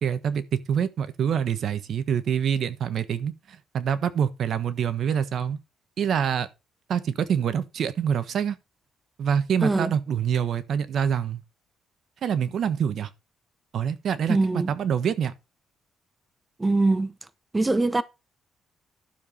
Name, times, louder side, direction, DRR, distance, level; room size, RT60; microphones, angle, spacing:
voice 1, 0.0-5.6 6.0-6.5 6.9-8.5 9.2-11.4 12.2-13.1 13.7-15.3, right 8 dB, 65° right, 1.2 m, -26 dB
voice 2, 9.6-10.0 14.3-14.7 16.6-17.1 17.5-18.0, right 2 dB, 20° right, 0.8 m, -22 dB
12.0 x 7.0 x 4.0 m
cardioid pair, 90°, 0 cm